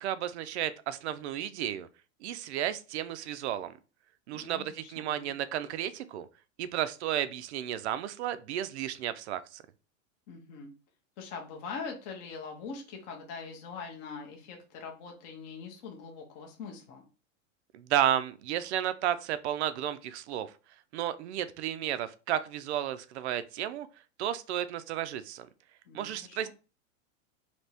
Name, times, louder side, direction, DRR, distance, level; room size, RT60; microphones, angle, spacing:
voice 1, 0.0-1.9 2.2-3.7 4.3-6.3 6.6-9.6 17.7-20.5 20.9-23.9 24.2-25.5 25.9-26.5, right 11 dB, 60° right, 0.5 m, -32 dB
voice 2, 4.3-5.3 10.3-10.7 11.2-17.0 25.9-26.5, left 5 dB, 25° left, 0.6 m, -43 dB
3.4 x 2.9 x 4.1 m
supercardioid pair, 175°, 39 cm